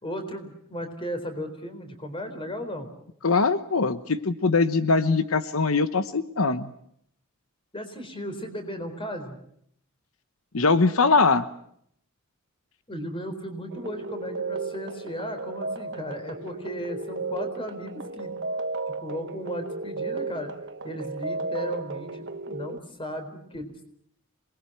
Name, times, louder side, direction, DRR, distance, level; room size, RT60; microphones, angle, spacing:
voice 1, 0.0-2.9 7.7-9.4 12.9-18.4 18.9-20.5 20.8-23.7, equal, 25° left, 7 dB, 4.1 m, -35 dB
voice 2, 3.2-6.7 10.5-11.4, left 4 dB, 75° left, 11 dB, 1.0 m, -22 dB
sound 1, 13.7-22.8, right 3 dB, 55° right, 1.3 m, -34 dB
27.0 x 20.5 x 7.9 m, 0.71 s
head